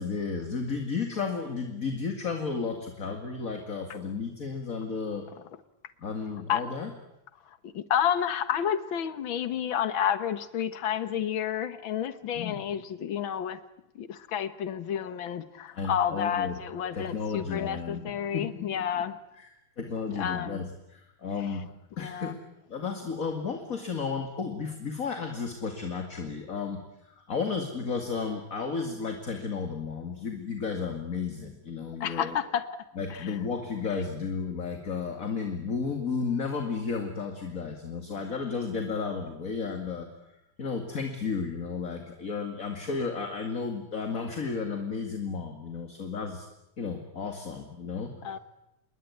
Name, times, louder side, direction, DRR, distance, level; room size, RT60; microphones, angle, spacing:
voice 1, 0.0-5.2 6.0-6.9 12.4-12.6 15.7-16.6 16.9-19.0 19.4-19.5 19.8-22.4 22.7-32.4 33.0-40.1 40.6-46.5 46.8-48.2, left 5 dB, 30° left, 4 dB, 2.2 m, -33 dB
voice 2, 7.5-13.6 14.0-19.2 20.1-20.7 22.0-22.4 32.0-32.7 33.1-33.4 48.2-48.4, left 9 dB, 55° left, 12 dB, 1.6 m, -30 dB
28.0 x 21.5 x 9.6 m, 0.87 s
omnidirectional pair, 3.4 m